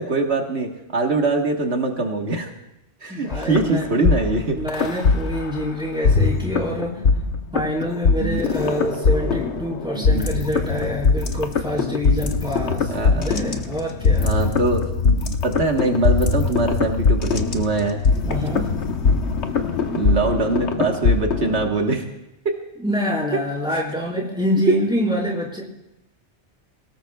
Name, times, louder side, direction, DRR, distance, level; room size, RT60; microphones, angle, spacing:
voice 1, 0.0-2.5 3.0-4.6 8.2-8.4 9.9-10.2 12.9-13.3 14.2-18.0 19.9-22.0 22.4-22.6 23.7-23.8 24.7-24.8, right 3 dB, 70° right, 2 dB, 1.7 m, -23 dB
voice 2, 3.1-3.9 4.5-7.0 7.5-14.3 18.2-18.7 22.8-25.6, equal, 5° right, -3 dB, 4.3 m, -26 dB
sound 1, 3.3-5.6 6.0-21.7, left 4 dB, 80° left, 1.3 m, -21 dB
26.5 x 18.0 x 2.3 m, 0.93 s
omnidirectional pair, 1.1 m